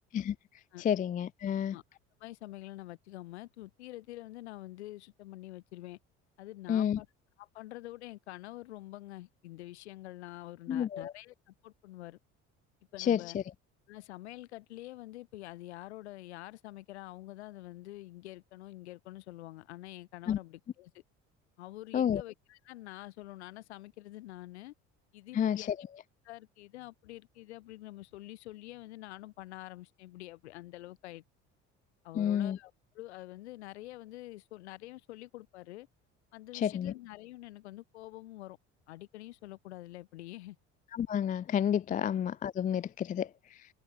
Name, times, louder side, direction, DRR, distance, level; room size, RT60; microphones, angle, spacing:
voice 1, 0.8-1.8 6.7-7.0 10.7-11.1 13.0-13.4 20.3-20.4 21.9-22.2 25.3-25.8 32.2-32.6 36.5-36.9 40.9-43.7, left 9 dB, 25° left, 0.3 m, -30 dB
voice 2, 2.2-6.0 6.4-7.1 7.4-12.2 12.9-13.4 13.9-20.9 21.6-24.7 25.1-25.7 26.2-31.2 32.0-35.9 36.3-38.6 38.9-40.6, left 17 dB, 90° left, 4.2 m, -47 dB
hypercardioid pair, 70°, 33 cm